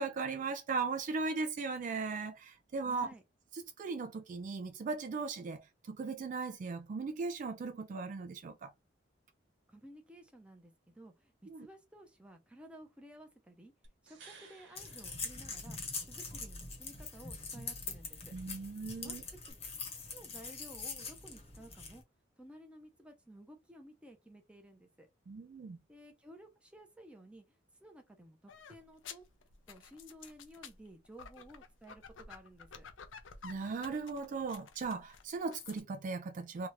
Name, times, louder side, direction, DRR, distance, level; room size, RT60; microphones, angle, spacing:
voice 1, 0.0-3.1 3.5-8.7 11.5-11.7 18.3-19.2 25.3-25.8 33.4-36.7, right 4 dB, 45° right, 0.3 m, -38 dB
voice 2, 2.8-3.2 9.7-13.7 14.0-15.8 16.0-18.3 19.0-19.2 19.5-19.6 20.1-22.0 22.4-25.1 25.9-29.2 29.7-32.9, right 1 dB, 5° right, 0.7 m, -55 dB
sound 1, 13.8-16.1 19.5-19.6, right 5 dB, 65° right, 1.1 m, -58 dB
sound 2, 14.7-22.0, left 4 dB, 35° left, 0.9 m, -43 dB
sound 3, 28.5-35.8, left 6 dB, 90° left, 0.6 m, -52 dB
2.9 x 2.4 x 3.1 m
head